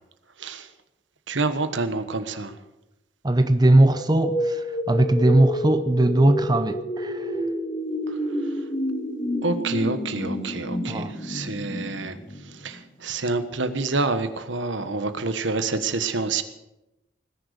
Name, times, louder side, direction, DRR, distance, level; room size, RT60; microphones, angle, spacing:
voice 1, 1.3-2.5 9.4-12.1 12.6-16.4, right 3 dB, 80° right, 10 dB, 1.3 m, -27 dB
voice 2, 3.2-7.4 10.9-11.1, right 1 dB, 20° right, 10 dB, 0.6 m, -20 dB
sound 1, 3.9-12.8, equal, 30° left, 2.2 m, -29 dB
19.0 x 10.5 x 6.7 m, 0.94 s
head